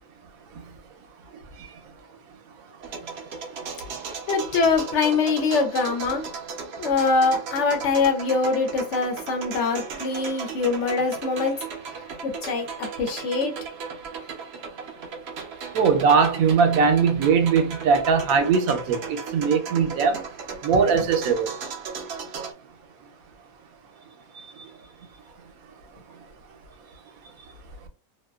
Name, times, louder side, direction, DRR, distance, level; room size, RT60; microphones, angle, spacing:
sound 1, 2.8-22.5, right 5 dB, 60° right, 0.7 m, -36 dB
voice 1, 4.3-6.2 6.8-11.6 12.2-13.5, left 4 dB, 65° left, 0.8 m, -23 dB
voice 2, 15.7-20.2 20.6-21.5, right 5 dB, 80° right, 1.1 m, -20 dB
2.5 x 2.2 x 2.3 m
omnidirectional pair, 1.4 m